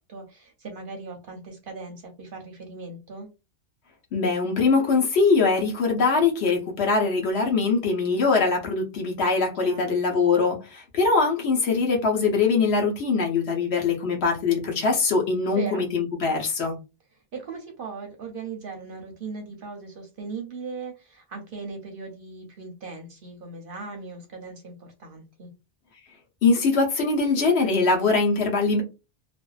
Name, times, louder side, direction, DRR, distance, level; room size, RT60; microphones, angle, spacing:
voice 1, 0.1-3.3 9.6-10.0 15.5-15.9 17.3-25.5, right 4 dB, 60° right, 0.7 m, -38 dB
voice 2, 4.1-16.7 26.4-28.8, left 4 dB, 65° left, 1.0 m, -22 dB
2.5 x 2.1 x 2.3 m
omnidirectional pair, 1.2 m